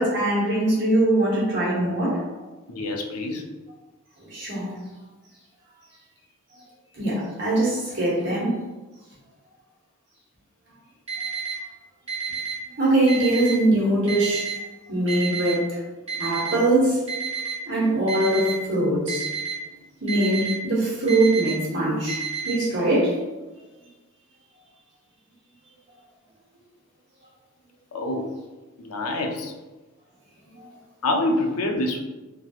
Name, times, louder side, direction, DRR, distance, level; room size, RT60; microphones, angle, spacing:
voice 1, 0.0-2.2 4.2-4.8 6.9-8.6 12.8-14.5 14.9-15.8 16.2-17.1 17.7-19.3 20.0-23.2 30.6-30.7, right 1 dB, 55° right, -6 dB, 1.1 m, -22 dB
voice 2, 2.7-3.5 13.1-13.9 27.9-28.4 28.8-29.5 31.0-32.0, left 1 dB, 90° left, 3 dB, 0.5 m, -27 dB
Alarm, 11.1-11.5 12.1-12.5 13.1-13.5 14.1-14.5 15.1-15.5 16.1-16.5 17.1-17.5 18.1-18.5 19.1-19.5 20.1-20.5 21.1-21.5 22.1-22.5, right 6 dB, 30° right, 1.0 m, -30 dB
3.2 x 2.8 x 2.3 m, 1.2 s
head